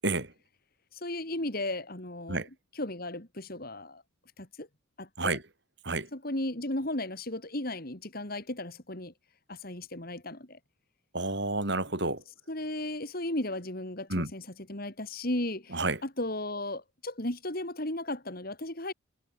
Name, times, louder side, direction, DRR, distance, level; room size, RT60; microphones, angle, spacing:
voice 1, 0.9-2.5 2.7-4.0 4.4-4.7 5.0-5.4 6.1-9.1 9.5-10.6 12.5-18.9, left 1 dB, 45° left, 3.5 m, -35 dB
voice 2, 11.1-12.2 14.1-14.3 15.7-16.0, right 2 dB, 55° right, 4.9 m, -29 dB
head